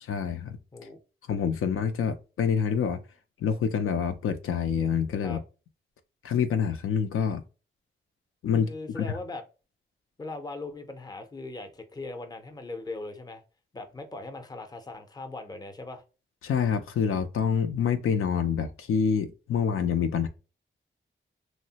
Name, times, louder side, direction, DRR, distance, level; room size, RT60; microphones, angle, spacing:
voice 1, 0.1-0.6 1.3-3.0 3.4-5.4 6.2-7.4 8.4-8.7 9.0-9.1 16.4-20.3, left 7 dB, 85° left, 0.4 m, -26 dB
voice 2, 8.5-9.4 10.2-13.4 13.7-16.0, left 2 dB, 20° left, 0.5 m, -39 dB
3.1 x 2.0 x 2.7 m
wide cardioid pair, 105°, 21 cm